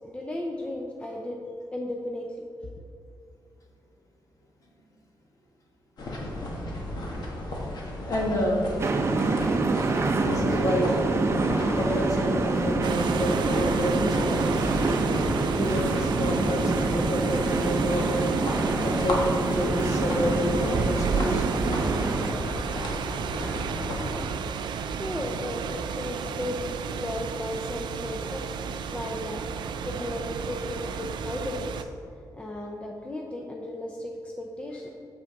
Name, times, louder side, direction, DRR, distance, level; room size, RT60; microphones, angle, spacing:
voice 1, 0.0-1.4 1.7-2.4 24.9-31.9 32.3-35.0, left 1 dB, 15° left, 0 dB, 0.6 m, -35 dB
sound 1, 6.0-24.3, left 1 dB, 65° left, 1.5 m, -34 dB
voice 2, 8.0-8.7 10.2-10.9 11.7-14.6 15.5-18.3 18.8-21.6, equal, 45° left, -1 dB, 1.6 m, -28 dB
sound 2, 8.8-22.3, right 3 dB, 35° right, 0.6 m, -27 dB
sound 3, 12.8-31.8, right 6 dB, 85° right, 0.4 m, -32 dB
7.1 x 6.2 x 4.6 m, 2.4 s
wide cardioid pair, 135°, 8 cm